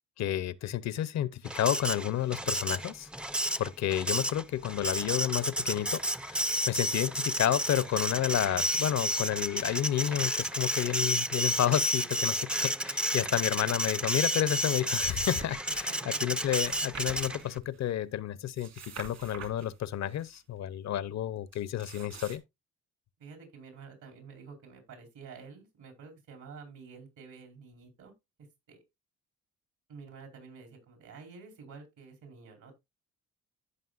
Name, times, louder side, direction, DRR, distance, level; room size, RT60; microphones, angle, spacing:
voice 1, 0.2-3.1 3.6-22.4, left 11 dB, 65° left, 0.7 m, -31 dB
Printer, 1.5-17.6, equal, 5° right, 0.4 m, -31 dB
sound 1, 15.0-17.9 18.4-20.4 21.5-22.4, right 7 dB, 55° right, 2.0 m, -47 dB
voice 2, 15.7-16.2 23.2-28.1 28.7-28.8 29.9-32.7, right 5 dB, 75° right, 4.5 m, -49 dB
15.0 x 5.5 x 2.4 m
cardioid pair, 90°, 30 cm